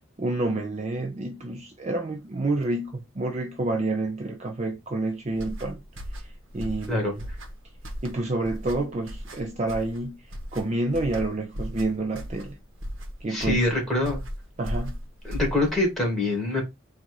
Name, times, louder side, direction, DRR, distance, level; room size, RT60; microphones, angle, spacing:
voice 1, 0.2-5.8 6.2-7.2 8.0-10.2 10.5-12.6 13.2-13.7 14.6-15.0, right 2 dB, 35° right, 0.5 m, -29 dB
sound 1, 5.3-15.9, equal, 70° right, 1.1 m, -36 dB
voice 2, 13.3-14.2 15.2-16.6, left 2 dB, ahead, 2.0 m, -24 dB
4.1 x 2.5 x 4.6 m
head